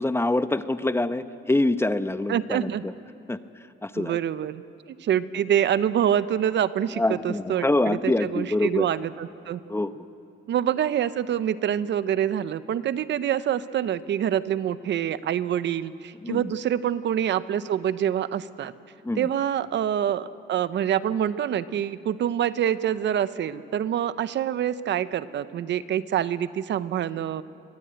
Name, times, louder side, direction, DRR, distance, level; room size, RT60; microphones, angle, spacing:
voice 1, 0.0-2.9 3.3-3.4 3.8-4.2 6.9-8.9 9.7-10.0 16.2-16.5 19.0-19.3, left 2 dB, 10° left, 12 dB, 0.8 m, -25 dB
voice 2, 2.3-2.8 4.0-9.6 10.5-18.7 19.2-27.4, right 10 dB, 65° right, 14 dB, 0.8 m, -26 dB
23.5 x 18.0 x 8.9 m, 2.7 s
cardioid pair, 90°, 20 cm